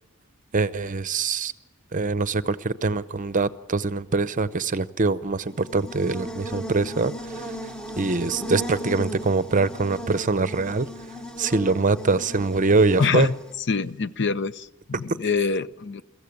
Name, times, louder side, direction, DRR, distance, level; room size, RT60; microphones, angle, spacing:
voice 1, 0.5-1.5 1.9-7.6 8.0-10.9 11.4-13.3, right 3 dB, 40° right, 15 dB, 0.7 m, -23 dB
Buzz, 5.4-13.6, equal, 5° left, 1.0 m, -36 dB
voice 2, 13.0-13.3 13.7-16.0, left 5 dB, 55° left, 15 dB, 0.6 m, -25 dB
23.0 x 15.0 x 9.8 m, 1.1 s
head